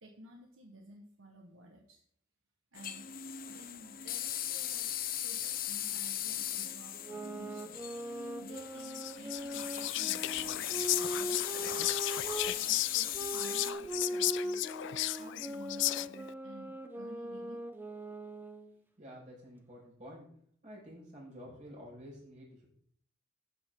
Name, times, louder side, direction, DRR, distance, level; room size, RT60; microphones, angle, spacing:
voice 1, 0.0-2.0 2.7-3.1 3.5-7.8 8.4-11.9 12.6-14.8 15.1-17.6, right 1 dB, 80° right, 1 dB, 1.5 m, -53 dB
sound 1, 2.8-13.7, left 10 dB, 45° left, 0.8 m, -38 dB
sound 2, 6.9-12.6 13.1-18.7, right 1 dB, 10° right, 0.9 m, -40 dB
Whispering, 8.8-16.3, left 16 dB, 60° left, 0.3 m, -35 dB
voice 2, 19.0-20.3 20.6-22.7, equal, 40° right, -4 dB, 5.3 m, -50 dB
13.5 x 8.0 x 3.9 m, 0.64 s
head